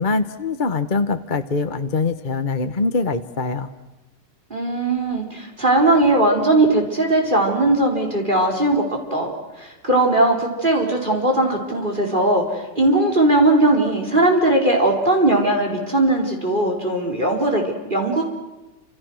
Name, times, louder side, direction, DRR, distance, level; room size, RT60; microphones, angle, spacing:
voice 1, 0.0-3.7, left 3 dB, 35° left, 9 dB, 1.0 m, -23 dB
voice 2, 4.5-9.3 9.6-18.2, right 2 dB, 25° right, 1 dB, 4.5 m, -19 dB
29.5 x 27.0 x 6.4 m, 1.1 s
omnidirectional pair, 2.0 m